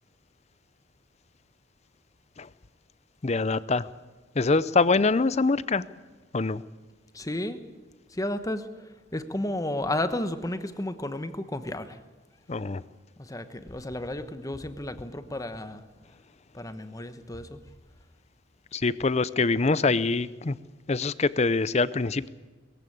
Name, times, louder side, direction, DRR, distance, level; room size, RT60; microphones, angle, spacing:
voice 1, 3.2-3.9 4.3-5.9 6.3-6.6 12.5-12.8 18.7-20.6 20.9-22.3, left 3 dB, 35° left, 17 dB, 0.6 m, -24 dB
voice 2, 7.1-7.6 8.1-12.0 13.2-15.8 16.5-17.6, left 1 dB, 15° left, 10 dB, 1.1 m, -33 dB
21.5 x 15.5 x 8.6 m, 1.3 s
head